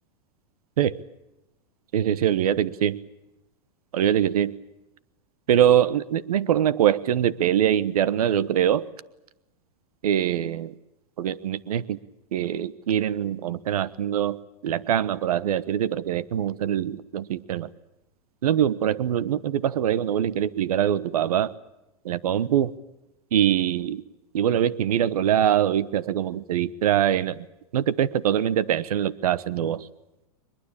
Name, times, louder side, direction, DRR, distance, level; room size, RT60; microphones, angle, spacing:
voice 1, 1.9-3.0 3.9-4.5 5.5-8.9 10.0-10.7 11.2-12.0 12.3-14.4 14.6-17.7 18.4-21.5 22.0-22.8 23.3-24.0 24.3-27.4 27.7-29.9, right 10 dB, 85° right, 17 dB, 1.1 m, -23 dB
23.0 x 22.0 x 8.6 m, 0.93 s
supercardioid pair, 160°, 19 cm